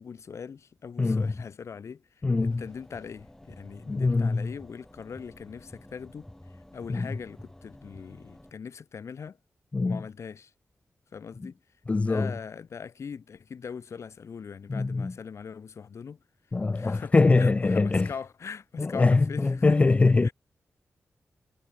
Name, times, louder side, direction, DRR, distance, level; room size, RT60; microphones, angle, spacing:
voice 1, 0.0-6.3 6.7-9.4 9.8-10.5 11.1-11.6 12.0-16.2 16.7-19.8 20.2-20.3, left 6 dB, 65° left, 7.7 m, -41 dB
voice 2, 1.0-1.3 2.2-2.6 3.9-4.5 6.9-7.1 9.7-10.0 11.9-12.3 14.7-15.1 16.5-18.1 18.8-20.3, left 3 dB, 25° left, 0.5 m, -23 dB
sound 1, 2.3-8.5, left 1 dB, 10° left, 7.4 m, -50 dB
wide cardioid pair, 175°, 5 cm